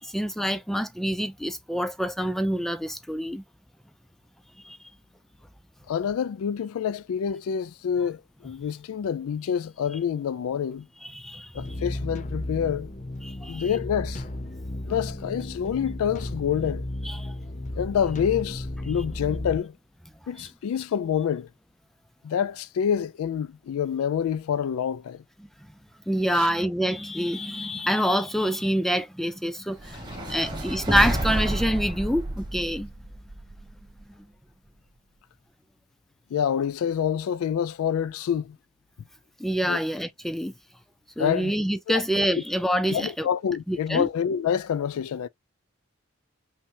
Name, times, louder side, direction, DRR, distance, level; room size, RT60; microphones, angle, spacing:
voice 1, 0.0-3.4 4.6-4.8 11.0-11.5 13.2-13.7 17.0-17.3 20.4-20.5 26.1-30.0 30.3-32.9 39.4-40.5 41.2-43.3 43.7-44.1, equal, ahead, 0.3 m, -26 dB
voice 2, 5.9-10.9 11.5-12.9 13.5-14.2 14.9-16.8 17.8-19.7 20.3-21.5 22.2-25.2 26.3-26.5 30.1-30.5 36.3-38.6 39.6-39.8 41.2-41.5 41.9-42.0 42.9-45.3, left 8 dB, 80° left, 0.3 m, -27 dB
sound 1, 11.5-19.6, left 1 dB, 35° left, 0.7 m, -34 dB
sound 2, 29.8-34.0, right 1 dB, 20° right, 1.2 m, -30 dB
5.6 x 2.2 x 2.8 m
head